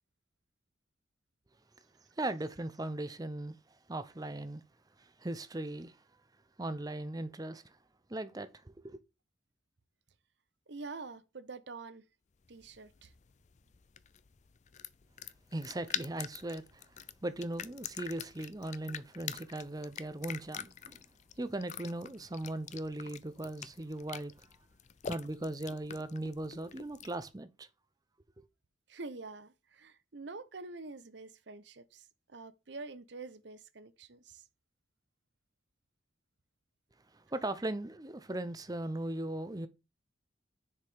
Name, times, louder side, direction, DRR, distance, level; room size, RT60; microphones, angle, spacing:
voice 1, 2.2-3.6 3.9-4.6 5.0-6.0 6.6-7.7 8.1-9.0 15.5-16.8 17.2-21.0 21.4-24.3 25.1-27.7 28.4-28.5 37.1-39.7, right 1 dB, 20° right, 0.6 m, -38 dB
voice 2, 10.7-12.0 12.5-13.1 28.9-34.4, right 3 dB, 60° right, 0.8 m, -46 dB
sound 1, 12.4-27.3, left 9 dB, 35° left, 0.4 m, -46 dB
6.6 x 4.9 x 5.0 m
head